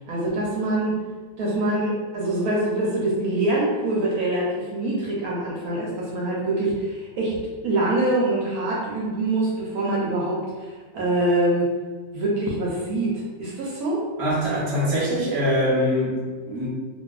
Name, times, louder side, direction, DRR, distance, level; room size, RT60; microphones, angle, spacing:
voice 1, 0.1-0.9 1.4-7.4 7.6-10.7 10.9-11.8 12.1-14.0, right 2 dB, 70° right, -5 dB, 1.0 m, -24 dB
voice 2, 14.2-16.7, equal, 20° right, -8 dB, 0.7 m, -23 dB
2.7 x 2.5 x 2.3 m, 1.4 s
omnidirectional pair, 1.8 m